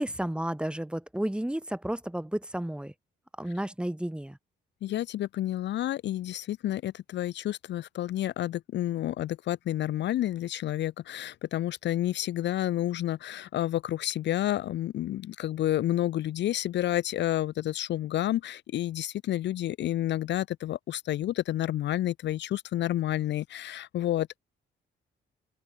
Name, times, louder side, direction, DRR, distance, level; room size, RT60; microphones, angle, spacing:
voice 1, 0.0-2.9 3.4-4.4, right 1 dB, 5° right, 2.2 m, -32 dB
voice 2, 4.8-24.4, left 13 dB, 65° left, 0.5 m, -30 dB
open air
cardioid pair, 90°, 20 cm